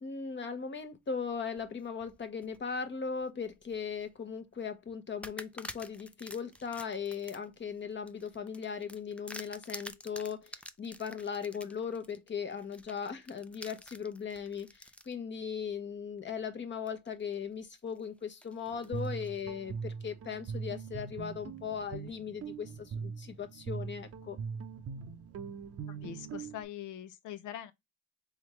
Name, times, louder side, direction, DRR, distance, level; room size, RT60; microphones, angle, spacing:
voice 1, 0.0-24.4, left 6 dB, 40° left, 0.9 m, -38 dB
sound 1, 1.3-2.6 3.1-4.1 4.5-4.7 5.2-15.1 15.7-15.8 16.9-17.3 17.8-19.4, left 1 dB, 5° left, 0.3 m, -49 dB
Guitar, 18.7-26.6, right 6 dB, 50° right, 0.7 m, -41 dB
voice 2, 25.9-27.7, left 11 dB, 80° left, 0.7 m, -43 dB
3.5 x 3.5 x 3.0 m
cardioid pair, 90°, 30 cm